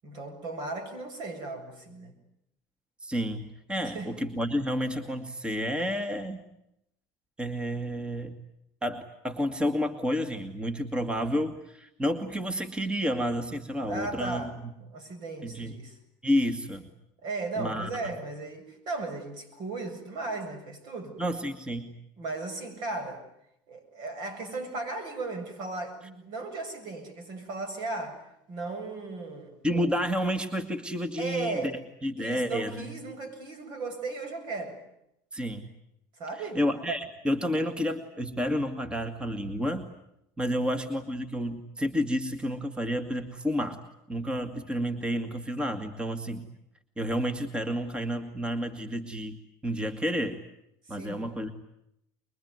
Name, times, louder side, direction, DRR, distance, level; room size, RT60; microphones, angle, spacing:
voice 1, 0.0-2.1 3.8-4.2 13.8-14.5 14.8-16.0 17.2-21.2 22.2-23.2 23.7-28.2 28.5-29.5 31.2-31.7 32.2-34.8 36.2-36.6 40.5-40.7 50.9-51.3, right 3 dB, 55° right, 8 dB, 7.3 m, -36 dB
voice 2, 3.0-6.4 7.4-8.3 8.8-14.7 15.4-15.7 16.2-16.9 17.6-17.9 21.2-21.9 29.6-31.7 32.0-32.9 35.3-35.7 36.6-39.9 40.4-43.8 44.1-46.5 47.0-49.4 49.6-50.4 50.9-51.5, equal, 10° right, 9 dB, 2.0 m, -30 dB
24.0 x 23.0 x 9.5 m, 0.79 s
supercardioid pair, 110°, 9 cm